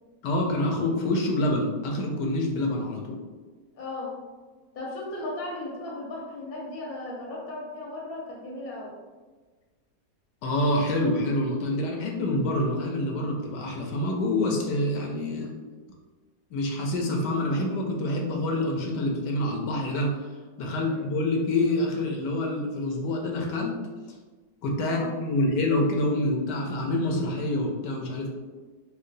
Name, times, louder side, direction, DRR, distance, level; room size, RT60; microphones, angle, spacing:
voice 1, 0.2-3.2 10.4-15.5 16.5-20.2 20.6-23.8 24.6-28.3, left 1 dB, 75° left, 0 dB, 1.2 m, -26 dB
voice 2, 3.7-4.2 4.7-9.0 20.8-21.1 24.8-25.1, left 2 dB, 40° left, -3 dB, 0.8 m, -36 dB
4.5 x 2.3 x 2.6 m, 1.3 s
omnidirectional pair, 1.9 m